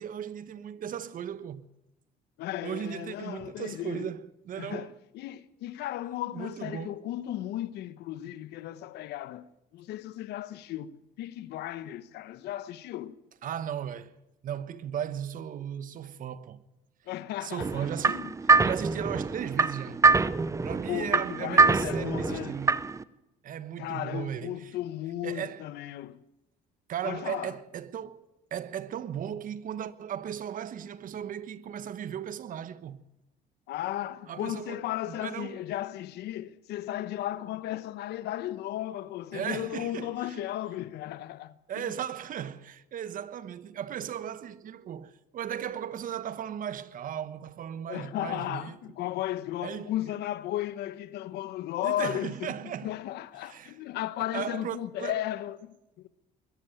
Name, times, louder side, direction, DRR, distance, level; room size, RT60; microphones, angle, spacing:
voice 1, 0.0-1.7 2.6-5.0 6.3-7.0 13.4-14.1 14.4-16.6 17.4-18.3 18.6-20.0 20.6-22.8 23.4-24.7 25.2-25.7 26.9-33.0 34.3-35.6 39.3-40.4 41.7-48.8 49.6-49.9 51.8-52.9 53.4-53.8 54.3-55.3, right 9 dB, 55° right, 1.1 m, -36 dB
voice 2, 2.4-4.1 4.6-9.5 9.7-13.2 17.1-18.3 20.9-22.6 23.8-26.2 27.0-27.5 33.7-41.9 47.9-56.1, left 13 dB, 80° left, 1.1 m, -35 dB
sound 1, 17.6-23.0, right 4 dB, 20° right, 0.7 m, -24 dB
21.5 x 13.0 x 9.1 m
cardioid pair, 110°, 17 cm